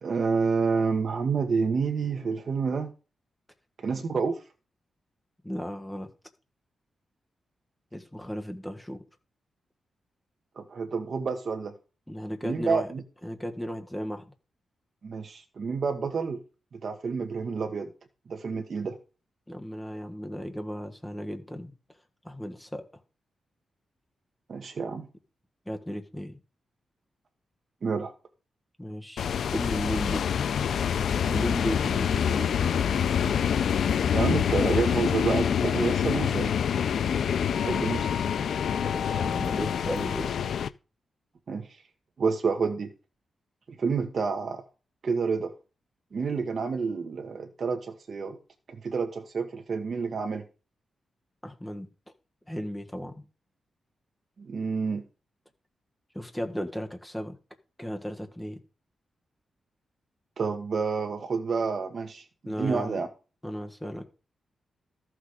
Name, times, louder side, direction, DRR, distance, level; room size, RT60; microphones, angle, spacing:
voice 1, 0.0-2.9 3.8-4.4 10.6-11.7 12.4-13.0 15.0-16.4 16.7-17.9 18.3-18.9 24.5-25.1 27.8-28.1 34.1-36.5 37.6-38.1 41.5-41.7 42.2-42.9 43.8-44.6 45.0-45.5 46.1-48.4 48.7-50.4 54.4-55.0 60.4-62.2 62.6-63.1, right 5 dB, 45° right, 1.4 m, -29 dB
voice 2, 5.4-6.1 7.9-9.0 12.1-12.9 13.2-14.3 19.5-21.7 22.2-22.8 25.6-26.4 28.8-30.3 31.2-33.4 38.8-40.3 51.4-51.9 52.5-53.2 56.1-57.4 57.8-58.6 62.4-63.0 63.4-64.1, equal, 5° left, 1.4 m, -35 dB
sound 1, 29.2-40.7, left 8 dB, 70° left, 0.5 m, -26 dB
14.0 x 6.3 x 4.9 m
wide cardioid pair, 160°, 0 cm